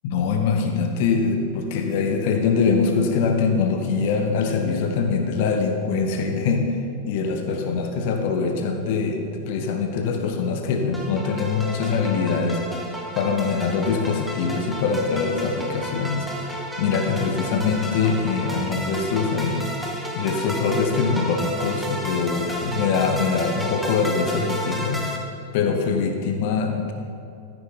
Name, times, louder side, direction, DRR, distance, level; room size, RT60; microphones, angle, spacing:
voice 1, 0.0-6.6 7.0-12.6 13.1-19.6 20.1-25.0 25.5-26.9, left 5 dB, 50° left, 4 dB, 1.2 m, -23 dB
sound 1, 10.9-25.2, equal, ahead, 1.6 m, -32 dB
14.5 x 9.1 x 4.1 m, 2.5 s
figure-of-eight pair, 90°, 0 cm